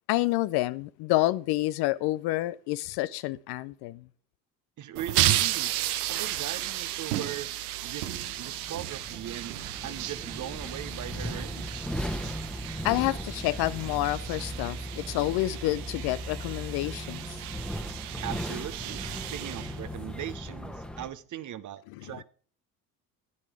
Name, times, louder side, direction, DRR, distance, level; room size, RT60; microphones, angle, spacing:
voice 1, 0.1-4.0 12.8-17.4, left 17 dB, 55° left, 0.5 m, -28 dB
voice 2, 4.8-9.5 9.8-11.9 18.2-22.2, right 11 dB, 40° right, 0.8 m, -40 dB
sound 1, 5.0-20.4, right 13 dB, 75° right, 0.8 m, -34 dB
sound 2, 7.9-21.1, equal, ahead, 1.2 m, -38 dB
10.0 x 7.0 x 4.7 m
hypercardioid pair, 60°, 46 cm